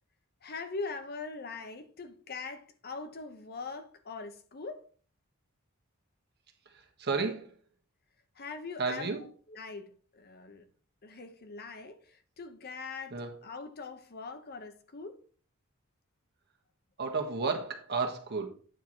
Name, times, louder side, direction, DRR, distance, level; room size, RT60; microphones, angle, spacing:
voice 1, 0.4-4.8 8.4-9.1 9.5-9.8 10.1-10.7 11.0-15.2, left 4 dB, 45° left, 0.9 m, -42 dB
voice 2, 6.6-7.6 8.8-9.2 13.1-13.3 17.0-18.5, right 4 dB, 50° right, 1.5 m, -32 dB
9.2 x 4.7 x 4.6 m
head